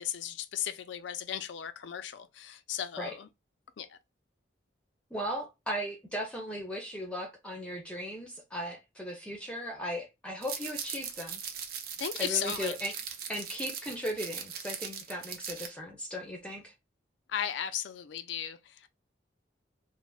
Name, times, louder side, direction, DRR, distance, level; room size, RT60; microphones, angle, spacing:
voice 1, 0.0-3.3 3.8-4.0 12.0-12.7 17.3-18.9, left 10 dB, 70° left, 0.3 m, -36 dB
voice 2, 5.1-11.4 12.2-12.9 13.3-16.7, equal, 5° left, 0.5 m, -37 dB
sound 1, 10.4-15.7, right 8 dB, 50° right, 0.5 m, -39 dB
3.2 x 2.0 x 2.2 m
head